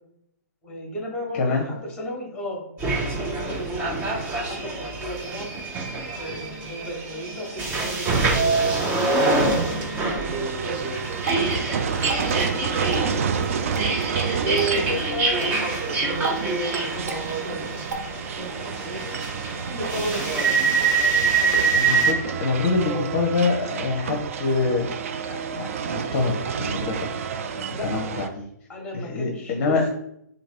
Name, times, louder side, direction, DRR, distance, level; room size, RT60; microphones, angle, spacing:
voice 1, 0.6-5.5 6.1-10.9 11.5-13.6 14.4-19.0 19.7-20.6 21.3-21.8 22.8-23.2 27.7-28.1 28.7-29.8, right 1 dB, 10° left, 0 dB, 1.2 m, -34 dB
voice 2, 1.3-1.7 21.7-24.9 25.5-27.1 27.8-28.5 28.9-29.9, left 3 dB, 40° left, 0 dB, 0.6 m, -25 dB
sound 1, 2.8-22.1, right 4 dB, 20° right, 0.7 m, -25 dB
sound 2, 10.2-28.3, right 6 dB, 50° right, 0.3 m, -30 dB
Water / Drip, 10.9-17.9, right 4 dB, 65° right, 0.8 m, -37 dB
2.9 x 2.7 x 4.4 m, 0.76 s
figure-of-eight pair, 125°, 10 cm